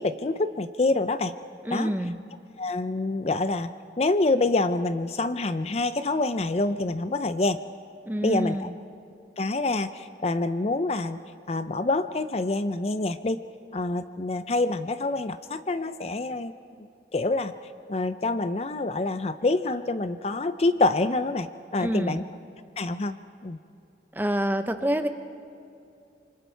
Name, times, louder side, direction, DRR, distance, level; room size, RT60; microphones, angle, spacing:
voice 1, 0.0-1.3 1.7-1.9 2.6-3.7 4.0-7.6 8.2-8.7 9.4-11.2 11.5-13.4 13.7-16.5 16.8-17.5 17.9-22.2 22.8-23.6, left 2 dB, 35° left, 12 dB, 0.5 m, -26 dB
voice 2, 1.6-2.2 8.1-8.7 21.8-22.2 24.1-25.1, equal, 10° right, 8 dB, 0.7 m, -27 dB
27.0 x 24.5 x 4.5 m, 2.6 s
head